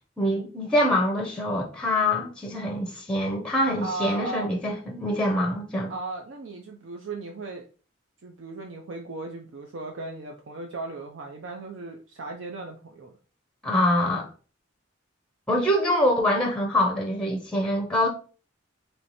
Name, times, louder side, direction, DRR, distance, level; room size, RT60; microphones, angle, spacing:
voice 1, 0.2-5.9 13.6-14.3 15.5-18.1, left 1 dB, 5° left, 0.6 m, -24 dB
voice 2, 3.8-4.5 5.9-7.7 8.2-13.1, right 2 dB, 75° right, 0.5 m, -36 dB
3.2 x 3.0 x 4.0 m
head